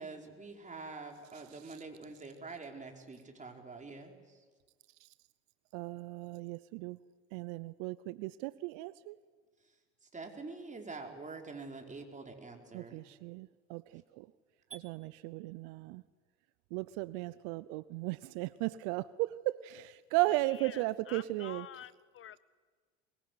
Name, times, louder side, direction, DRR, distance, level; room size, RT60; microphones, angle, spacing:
voice 1, 0.0-4.4 10.0-13.0 14.7-14.8, right 3 dB, 20° right, 2 dB, 4.8 m, -46 dB
voice 2, 5.7-7.0 7.3-9.2 12.7-14.3 14.7-16.0 16.7-21.6, right 19 dB, 65° right, 17 dB, 0.7 m, -36 dB
voice 3, 20.2-22.4, left 10 dB, 35° left, 18 dB, 0.7 m, -48 dB
23.5 x 22.0 x 9.6 m, 1.5 s
hypercardioid pair, 75°, 36 cm